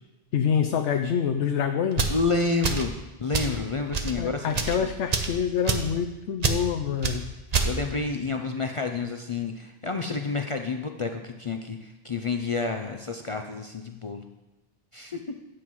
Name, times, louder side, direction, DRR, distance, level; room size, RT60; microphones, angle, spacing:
voice 1, 0.3-2.2 4.2-7.3, left 7 dB, 80° left, 7 dB, 0.9 m, -26 dB
sound 1, 1.9-2.2 2.6-2.9 3.3-3.6 3.9-4.1 4.5-4.8 5.1-5.3 5.7-5.9 6.4-6.6 7.0-7.2 7.5-7.7, right 5 dB, 40° right, 0.7 m, -26 dB
voice 2, 2.1-2.9 3.2-4.9 7.6-14.2 14.9-15.2, left 4 dB, 55° left, 5 dB, 0.3 m, -29 dB
13.5 x 7.7 x 3.1 m, 1.1 s
omnidirectional pair, 1.2 m